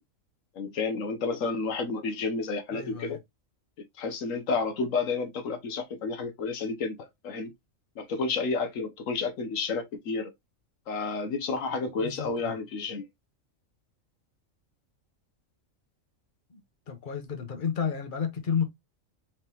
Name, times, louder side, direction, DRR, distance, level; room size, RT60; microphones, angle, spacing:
voice 1, 0.6-3.2 4.0-7.5 8.0-10.3 10.9-13.1, left 4 dB, 75° left, 1.2 m, -31 dB
voice 2, 2.7-3.2 11.8-12.5 16.5-16.6 16.9-18.6, left 7 dB, 40° left, 1.1 m, -32 dB
4.5 x 3.5 x 2.9 m
omnidirectional pair, 1.4 m